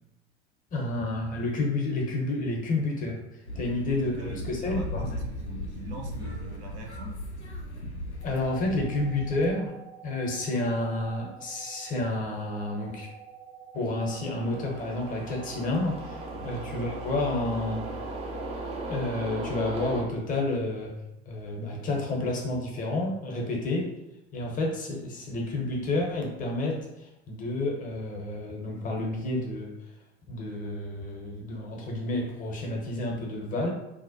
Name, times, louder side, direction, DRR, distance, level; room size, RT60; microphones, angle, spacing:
voice 1, 0.7-3.2 3.6-5.1 8.2-9.7 10.0-13.1 13.7-17.8 18.9-20.9 21.3-23.9 24.3-29.7 30.3-33.7, left 2 dB, 25° left, -1 dB, 0.6 m, -30 dB
sound 1, 3.5-9.5, left 1 dB, 90° left, 0.5 m, -37 dB
voice 2, 3.5-7.2 16.3-16.5 21.1-21.2, right 2 dB, 75° right, 1 dB, 0.6 m, -43 dB
sound 2, 8.2-18.7, right 7 dB, 45° right, 0.8 m, -48 dB
sound 3, 13.9-20.0, right 2 dB, 20° right, 0.4 m, -37 dB
2.6 x 2.1 x 2.5 m, 0.90 s
figure-of-eight pair, 75°, 33 cm